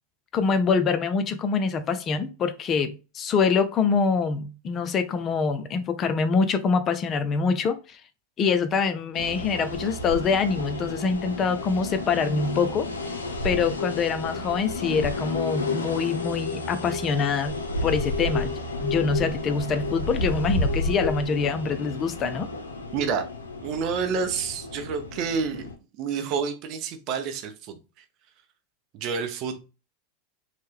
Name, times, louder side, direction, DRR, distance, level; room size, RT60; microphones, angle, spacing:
voice 1, 0.3-8.0 8.4-12.9 13.4-22.5, left 5 dB, 35° left, 0.4 m, -25 dB
sound 1, 9.1-25.7, left 2 dB, 90° left, 0.5 m, -31 dB
voice 2, 22.9-23.3 23.6-27.8 28.9-29.6, right 6 dB, 50° right, 0.6 m, -29 dB
3.0 x 2.1 x 3.2 m
hypercardioid pair, 95°, 0 cm